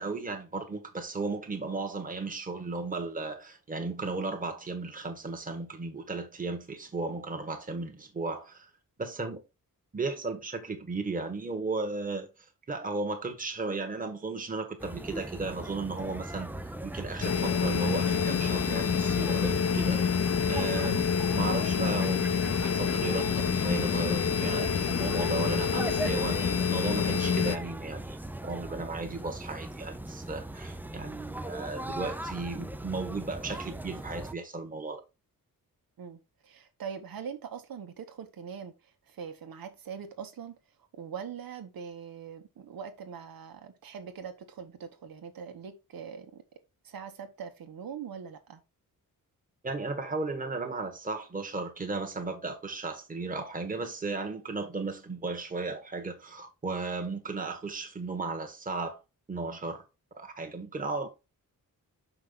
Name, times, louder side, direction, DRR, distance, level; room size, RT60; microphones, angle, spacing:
voice 1, 0.0-8.7 9.0-9.4 9.9-12.3 12.7-20.0 20.5-21.1 21.3-28.2 28.4-35.0 49.6-59.0 59.3-59.8 60.2-61.1, right 3 dB, 25° right, 1.6 m, -35 dB
sound 1, 14.8-34.3, right 1 dB, 5° right, 0.5 m, -39 dB
sound 2, 17.2-27.6, left 6 dB, 45° left, 0.8 m, -27 dB
voice 2, 36.0-38.7 39.1-40.6 41.0-46.4 46.8-48.6, right 7 dB, 85° right, 1.7 m, -42 dB
6.4 x 5.8 x 3.8 m
wide cardioid pair, 155°, 35 cm